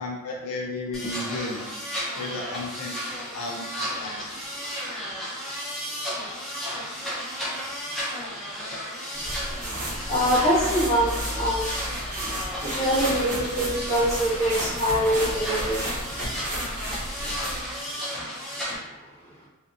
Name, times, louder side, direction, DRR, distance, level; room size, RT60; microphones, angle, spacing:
voice 1, 0.0-1.7 2.2-3.0 3.3-4.2, left 2 dB, 90° left, -2 dB, 0.5 m, -33 dB
sound 1, 0.9-18.8, equal, ahead, 0.5 m, -33 dB
sound 2, 9.2-17.7, right 1 dB, 35° right, 0.8 m, -33 dB
voice 2, 10.1-11.6 12.7-15.7, equal, 30° left, -9 dB, 0.9 m, -23 dB
2.6 x 2.4 x 2.4 m, 1.0 s
head